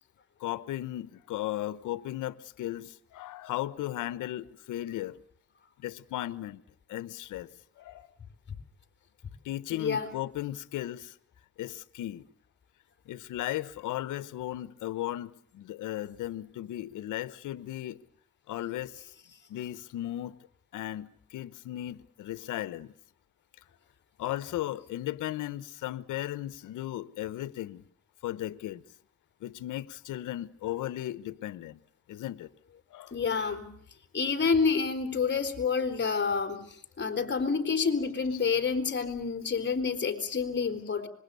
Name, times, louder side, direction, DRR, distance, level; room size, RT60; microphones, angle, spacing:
voice 1, 0.4-5.2 5.8-6.6 6.9-7.5 7.8-8.1 9.4-11.1 11.6-12.2 13.1-18.0 18.5-19.0 19.5-20.4 20.7-22.9 24.2-27.8 28.2-28.8 29.4-31.8 32.1-32.5 32.9-33.2 38.3-38.4, left 14 dB, 85° left, 1.2 m, -36 dB
voice 2, 9.7-10.1 33.1-33.7 34.1-36.6 37.0-41.1, left 5 dB, 35° left, 3.8 m, -28 dB
25.0 x 22.0 x 6.9 m
cardioid pair, 90°, 30 cm